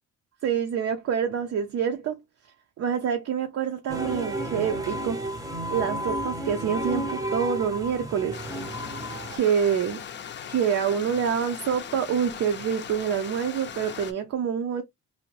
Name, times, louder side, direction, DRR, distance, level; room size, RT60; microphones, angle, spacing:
voice 1, 0.4-2.2 2.8-5.2 5.7-8.4 9.3-10.0 10.5-14.8, right 7 dB, 55° right, 0.6 m, -26 dB
sound 1, 3.9-9.4, right 1 dB, 10° right, 0.7 m, -32 dB
Stream, 8.3-14.1, left 8 dB, 40° left, 0.5 m, -39 dB
2.7 x 2.1 x 3.0 m
cardioid pair, 90°, 30 cm